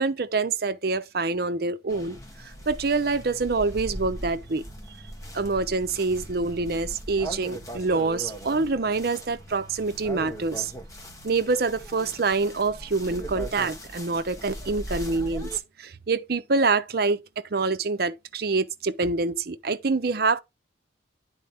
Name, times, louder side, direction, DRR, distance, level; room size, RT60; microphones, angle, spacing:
voice 1, 0.0-2.2 2.4-4.6 5.3-10.7 11.2-15.5 15.8-20.4, right 3 dB, 55° right, 0.6 m, -26 dB
sound 1, 1.9-15.6, right 1 dB, 20° left, 1.4 m, -39 dB
10.0 x 4.4 x 3.5 m
head